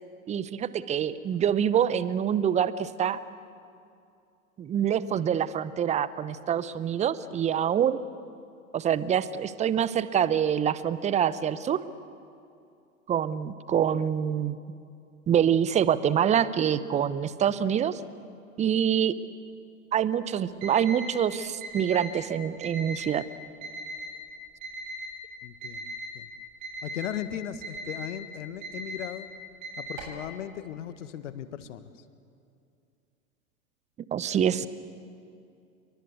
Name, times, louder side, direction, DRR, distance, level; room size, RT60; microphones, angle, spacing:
voice 1, 0.3-3.2 4.6-8.0 8.7-11.8 13.1-14.6 15.3-18.0 18.6-19.1 19.9-23.2 34.1-34.7, right 9 dB, 15° right, 17 dB, 0.8 m, -25 dB
Alarm, 20.6-21.1 21.6-22.1 22.6-23.1 23.6-24.1 24.6-25.1 25.6-26.1 26.6-27.1 27.6-28.1 28.6-29.1 29.6-30.2, right 1 dB, 40° right, 7.4 m, -38 dB
voice 2, 25.4-26.3 26.8-29.3 29.8-32.0, left 10 dB, 55° left, 12 dB, 1.7 m, -37 dB
29.0 x 23.0 x 8.3 m, 2.5 s
figure-of-eight pair, 95°, 42 cm